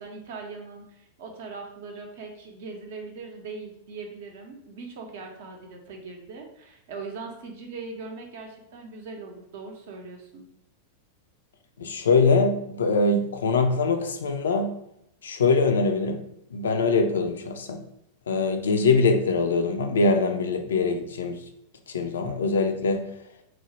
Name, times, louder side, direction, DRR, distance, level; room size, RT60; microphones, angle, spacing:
voice 1, 0.0-10.5, right 4 dB, 55° right, 2 dB, 0.5 m, -40 dB
voice 2, 11.8-14.7 15.2-16.2 16.5-17.8 18.3-21.4 21.9-23.1, left 3 dB, 65° left, 6 dB, 0.3 m, -23 dB
3.0 x 2.0 x 2.9 m, 0.78 s
figure-of-eight pair, 90°, 0 cm